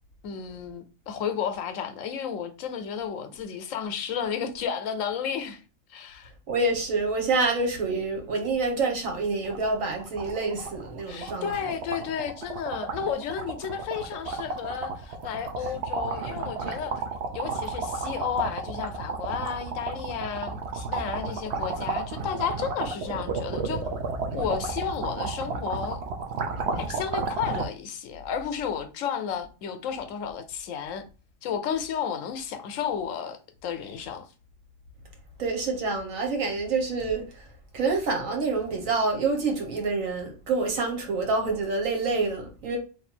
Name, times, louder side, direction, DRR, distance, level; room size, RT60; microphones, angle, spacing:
voice 1, 0.2-5.6 5.9-6.3 11.1-17.0 17.3-23.9 24.3-26.0 26.7-31.0 31.4-34.3, left 7 dB, 80° left, 1.0 m, -32 dB
voice 2, 6.5-11.7 15.6-15.7 35.4-42.8, right 3 dB, 85° right, 1.5 m, -27 dB
sound 1, 8.6-8.7 9.0-9.1 9.4-27.7, right 4 dB, 60° right, 0.9 m, -32 dB
3.2 x 2.7 x 4.3 m
omnidirectional pair, 1.3 m